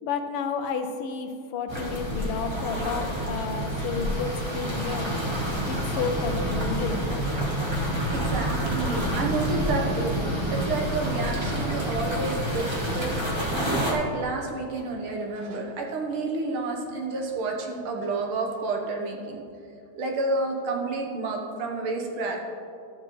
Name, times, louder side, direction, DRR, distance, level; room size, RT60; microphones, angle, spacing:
voice 1, 0.0-5.2 5.7-7.1, left 5 dB, 85° left, 6 dB, 1.6 m, -31 dB
sound 1, 1.7-13.9, equal, 50° right, 0.3 m, -28 dB
voice 2, 7.8-10.2 10.5-13.2 13.5-19.4 20.0-22.4, right 3 dB, 75° right, 1 dB, 1.9 m, -30 dB
12.5 x 6.8 x 3.0 m, 2.4 s
omnidirectional pair, 2.4 m